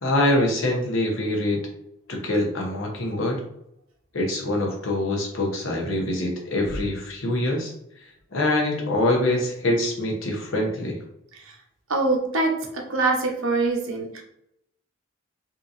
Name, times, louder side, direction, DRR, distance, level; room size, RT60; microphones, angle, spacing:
voice 1, 0.0-1.6 2.1-3.4 4.1-7.7 8.3-11.0, left 1 dB, 75° left, 0 dB, 0.9 m, -24 dB
voice 2, 11.9-14.2, right 3 dB, 80° right, 1 dB, 0.8 m, -24 dB
3.6 x 2.8 x 2.6 m, 0.78 s
head